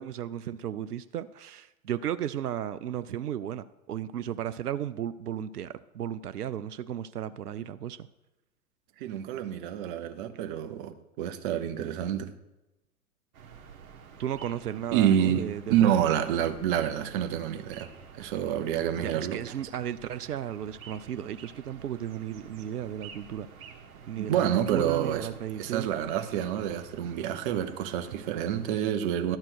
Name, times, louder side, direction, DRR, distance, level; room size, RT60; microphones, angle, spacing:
voice 1, 0.0-8.1 14.2-16.1 19.0-23.5 24.1-25.9, right 10 dB, 85° right, 0.5 m, -35 dB
voice 2, 9.0-12.3 14.9-17.9 18.2-19.4 24.2-25.3 25.6-29.4, right 10 dB, 35° right, 0.8 m, -28 dB
sound 1, 13.3-28.7, right 6 dB, 65° right, 1.6 m, -50 dB
11.0 x 4.4 x 6.2 m
figure-of-eight pair, 110°, 45 cm